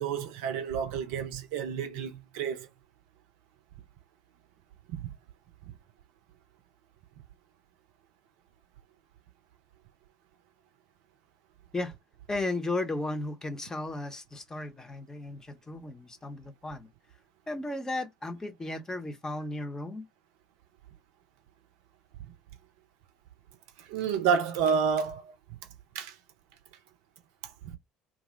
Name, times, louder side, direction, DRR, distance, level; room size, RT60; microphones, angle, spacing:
voice 1, 0.0-2.7 4.9-5.0 23.9-25.3 25.9-26.1, right 7 dB, 65° right, 0.5 m, -29 dB
voice 2, 12.3-16.9 17.5-20.1, left 2 dB, 20° left, 0.7 m, -35 dB
2.6 x 2.0 x 3.0 m
figure-of-eight pair, 60°, 3 cm